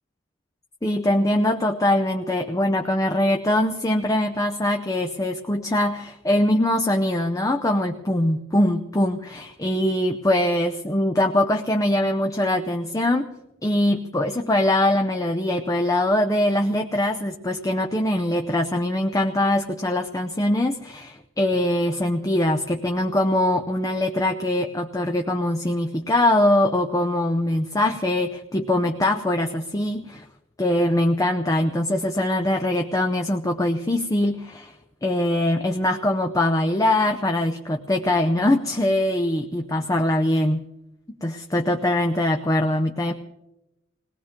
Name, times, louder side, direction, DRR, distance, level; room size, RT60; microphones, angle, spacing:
voice 1, 0.8-13.3 13.6-30.2 30.6-34.7 35.0-40.6 41.2-43.1, left 1 dB, 15° left, 4 dB, 0.6 m, -22 dB
20.5 x 18.5 x 3.7 m, 0.93 s
head